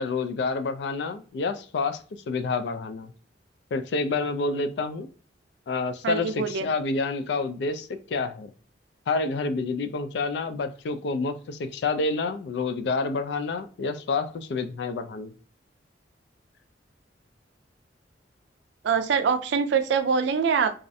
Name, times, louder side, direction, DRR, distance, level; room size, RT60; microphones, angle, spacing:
voice 1, 0.0-2.0 2.3-3.1 3.7-5.1 5.7-8.5 9.1-15.3, left 3 dB, 65° left, 9 dB, 0.3 m, -28 dB
voice 2, 6.0-6.7 18.8-20.7, right 6 dB, 75° right, 9 dB, 0.4 m, -24 dB
2.4 x 2.0 x 2.6 m, 0.40 s
head